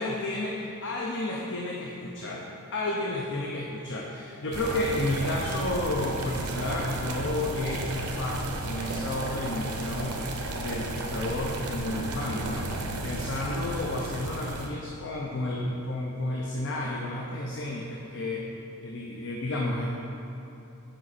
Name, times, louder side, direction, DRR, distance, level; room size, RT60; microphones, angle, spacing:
voice 1, 0.0-2.5 2.7-12.7 13.0-18.5 18.8-19.9, left 1 dB, 55° left, -2 dB, 0.6 m, -31 dB
sound 1, 4.5-14.7, right 2 dB, 80° right, 0.8 m, -34 dB
7.7 x 5.5 x 4.1 m, 3.0 s
head